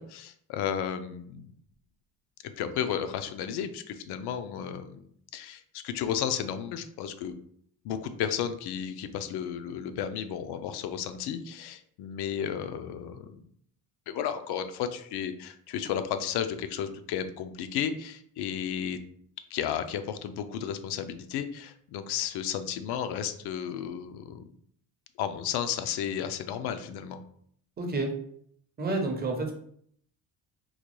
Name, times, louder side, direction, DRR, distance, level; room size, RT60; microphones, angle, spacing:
voice 1, 0.0-1.5 2.4-5.0 5.3-7.3 7.8-13.4 14.1-19.0 19.5-24.5 25.2-27.2, left 9 dB, 90° left, 9 dB, 0.5 m, -33 dB
voice 2, 27.8-28.2 28.8-29.5, right 2 dB, 25° right, 2 dB, 0.5 m, -29 dB
3.8 x 2.2 x 3.0 m, 0.64 s
cardioid pair, 155°, 38 cm